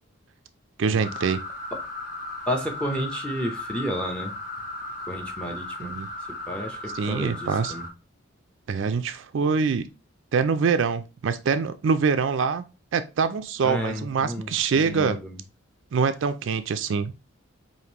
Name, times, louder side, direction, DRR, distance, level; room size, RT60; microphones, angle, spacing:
voice 1, 0.8-1.4 5.8-6.1 6.9-7.7 8.7-9.9 10.3-12.6 12.9-15.2 15.9-17.1, right 5 dB, 65° right, 0.3 m, -24 dB
sound 1, 1.0-7.9, left 2 dB, 40° left, 1.1 m, -36 dB
voice 2, 2.5-4.4 5.1-5.9 6.5-7.8 13.6-15.4, equal, 5° left, 0.7 m, -31 dB
5.0 x 2.6 x 2.9 m
head